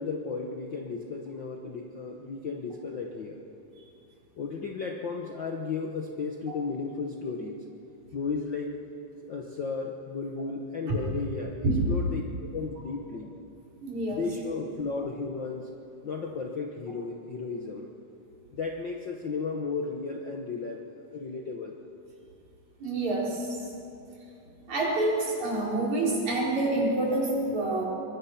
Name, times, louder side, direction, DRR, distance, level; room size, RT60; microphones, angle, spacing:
voice 1, 0.0-3.4 4.4-7.6 8.1-8.8 9.2-13.3 14.1-15.7 16.0-17.9 18.5-21.7, left 4 dB, 55° left, 1 dB, 1.4 m, -34 dB
voice 2, 13.8-14.2 22.8-23.7 24.7-27.9, right 2 dB, 65° right, -4 dB, 5.7 m, -27 dB
24.0 x 22.5 x 5.8 m, 2.8 s
omnidirectional pair, 3.6 m